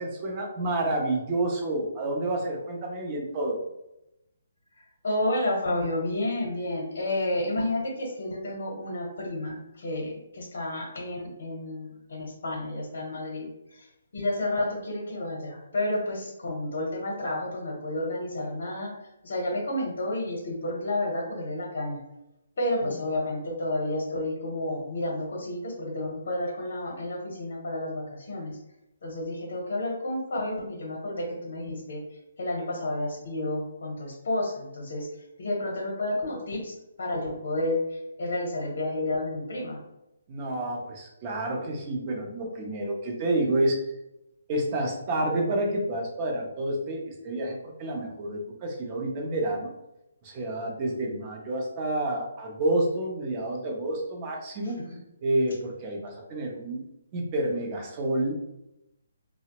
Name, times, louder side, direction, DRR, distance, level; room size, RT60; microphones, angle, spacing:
voice 1, 0.0-3.6 22.8-22.9 40.3-43.9 44.5-49.7 50.2-54.8 55.2-56.9 57.1-58.4, right 1 dB, 25° right, 1 dB, 0.6 m, -29 dB
voice 2, 4.7-22.0 22.6-28.6 29.0-32.0 32.4-35.1 35.4-39.8, left 1 dB, 55° left, -2 dB, 0.8 m, -31 dB
3.2 x 2.0 x 2.8 m, 0.88 s
hypercardioid pair, 165°, 0 cm